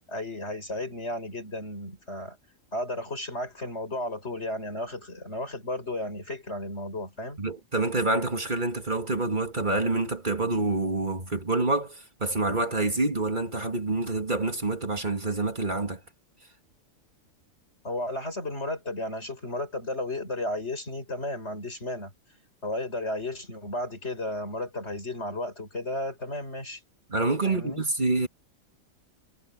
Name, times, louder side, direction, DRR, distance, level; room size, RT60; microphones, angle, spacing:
voice 1, 0.1-2.4 2.7-7.4 17.8-22.1 22.6-26.8 27.5-27.8, left 1 dB, 50° left, 6.8 m, -33 dB
voice 2, 7.4-16.0 27.1-28.3, right 2 dB, 35° right, 2.2 m, -27 dB
omnidirectional pair, 1.4 m